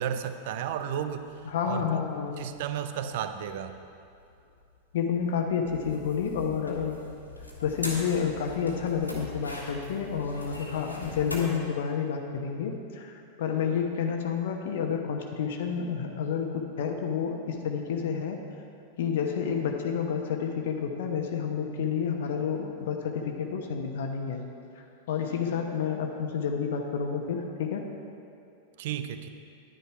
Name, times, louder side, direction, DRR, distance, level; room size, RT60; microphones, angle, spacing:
voice 1, 0.0-1.3 1.6-1.8 2.4-3.8 28.8-29.3, right 9 dB, 50° right, 9 dB, 0.6 m, -33 dB
sound 1, 0.6-11.4, left 2 dB, 85° left, 1.6 m, -42 dB
voice 2, 1.4-2.5 4.9-7.1 7.6-18.4 19.0-24.4 24.8-27.8, left 7 dB, 55° left, 4 dB, 1.0 m, -30 dB
10.5 x 9.8 x 4.6 m, 2.5 s
figure-of-eight pair, 90°, 0 cm